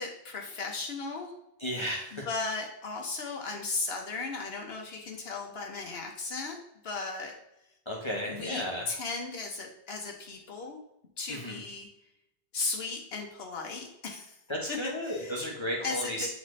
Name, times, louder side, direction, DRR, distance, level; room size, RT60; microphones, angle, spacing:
voice 1, 0.0-1.3 2.1-6.6 6.8-7.4 8.3-10.8 11.2-11.9 12.5-14.4 14.7-15.4 15.8-16.3, left 3 dB, 75° left, 1 dB, 1.1 m, -36 dB
voice 2, 1.6-2.2 7.9-8.9 11.3-11.6 14.5-16.3, equal, 30° left, -3 dB, 1.0 m, -34 dB
8.4 x 4.0 x 3.1 m, 0.86 s
omnidirectional pair, 1.1 m